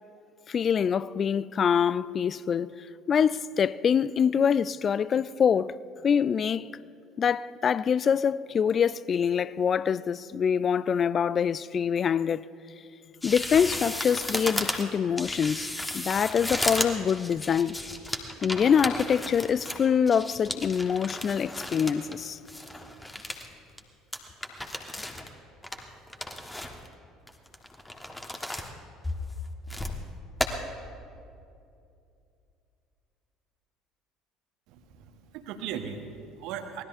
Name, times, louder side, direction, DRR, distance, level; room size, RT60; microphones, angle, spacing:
voice 1, 0.5-2.7 3.1-5.7 6.0-6.7 7.2-12.4 13.2-15.7 15.9-17.8 18.4-22.4, left 7 dB, 35° left, 0.3 m, -25 dB
sound 1, 13.2-22.2 22.5-23.5 23.8-23.9 24.1-25.3 25.6-26.9 27.3-28.7 29.0-30.0 30.4-30.5, left 1 dB, 10° left, 1.3 m, -34 dB
voice 2, 34.7-36.8, right 8 dB, 60° right, 1.2 m, -38 dB
24.0 x 18.5 x 2.6 m
figure-of-eight pair, 60°, 0 cm